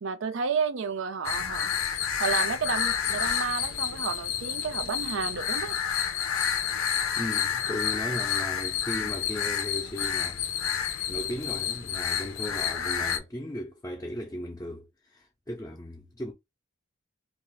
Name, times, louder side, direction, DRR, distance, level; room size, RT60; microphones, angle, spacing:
voice 1, 0.0-1.7 2.2-5.8, right 5 dB, 65° right, 0.5 m, -31 dB
sound 1, 1.2-13.2, left 8 dB, 85° left, 0.6 m, -29 dB
voice 2, 7.2-10.4 11.1-16.3, left 1 dB, 15° left, 0.5 m, -36 dB
2.4 x 2.4 x 3.1 m
head